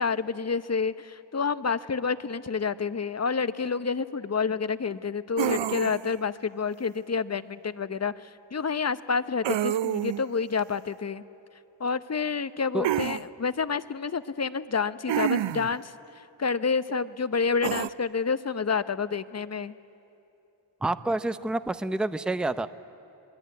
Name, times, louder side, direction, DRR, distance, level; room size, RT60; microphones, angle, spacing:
voice 1, 0.0-11.2 11.8-15.9 16.4-19.7, left 5 dB, 35° left, 14 dB, 0.9 m, -29 dB
sound 1, 5.4-6.1 9.4-10.2 12.8-13.2 15.1-15.7 17.6-17.9, right 11 dB, 75° right, 0.6 m, -28 dB
voice 2, 20.8-22.7, right 2 dB, ahead, 13 dB, 0.7 m, -28 dB
27.0 x 21.5 x 9.4 m, 2.9 s
cardioid pair, 70°, 45 cm